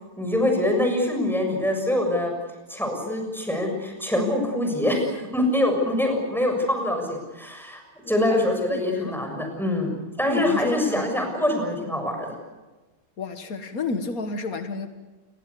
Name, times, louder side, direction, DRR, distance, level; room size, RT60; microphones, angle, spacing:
voice 1, 0.2-2.3 2.7-7.8 8.1-12.3, left 1 dB, ahead, 3 dB, 6.6 m, -24 dB
voice 2, 8.0-8.4 8.7-9.2 10.3-11.1 13.2-14.9, left 3 dB, 80° left, 8 dB, 1.9 m, -31 dB
28.5 x 21.5 x 8.4 m, 1.2 s
omnidirectional pair, 1.5 m